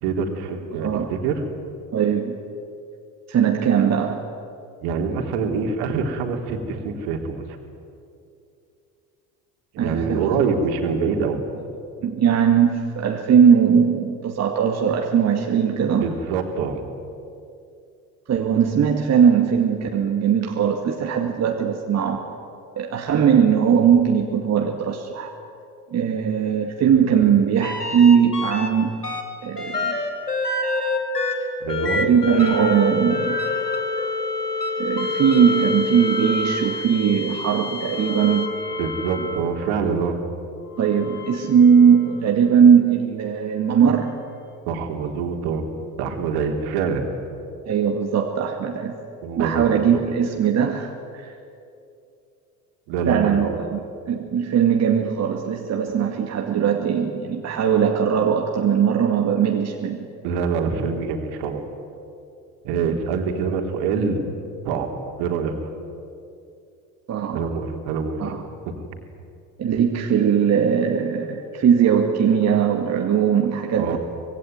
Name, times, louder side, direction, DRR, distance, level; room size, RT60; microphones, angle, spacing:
voice 1, 0.0-1.4 4.8-7.4 9.7-11.4 16.0-16.8 31.6-32.0 38.8-40.2 44.7-45.7 46.0-47.0 49.2-50.0 52.9-53.6 60.2-61.6 62.6-64.2 64.6-64.9 65.2-65.5 67.3-68.3 68.7-68.8 73.8-74.0, right 5 dB, 55° right, 4 dB, 3.6 m, -25 dB
voice 2, 0.7-1.1 1.9-2.4 3.3-4.2 9.8-10.3 12.0-16.1 18.3-22.3 22.8-25.3 25.9-28.9 29.4-30.0 31.4-31.5 31.9-33.4 34.8-38.5 40.8-44.1 47.7-49.0 49.4-51.3 53.1-60.1 67.1-67.5 68.2-68.4 69.6-74.0, right 7 dB, 35° right, 2 dB, 2.2 m, -19 dB
sound 1, 27.6-28.7 29.0-39.8 40.7-42.2 43.9-44.0, left 2 dB, 90° left, 2.4 m, -27 dB
25.0 x 21.0 x 9.4 m, 2.6 s
figure-of-eight pair, 65°, 45 cm